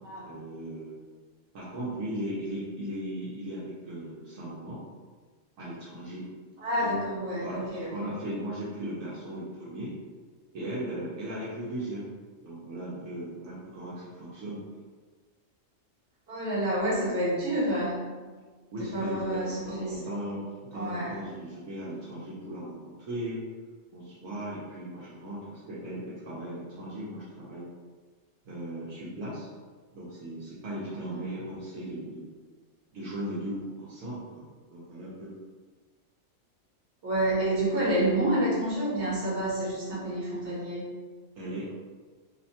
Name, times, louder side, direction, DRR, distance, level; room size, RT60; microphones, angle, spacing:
voice 1, 0.3-1.0 1.5-4.8 5.6-6.3 6.8-6.9 7.3-10.0 10.5-12.1 12.4-14.6 18.7-23.4 23.9-27.7 28.4-29.5 29.9-32.3 32.9-35.3 41.4-41.7, right 1 dB, 75° right, -9 dB, 1.0 m, -37 dB
voice 2, 6.6-7.9 16.3-18.1 18.8-20.0 20.7-21.2 31.0-31.4 37.0-40.9, right 1 dB, 60° right, -7 dB, 1.1 m, -29 dB
2.7 x 2.1 x 2.7 m, 1.4 s
omnidirectional pair, 1.4 m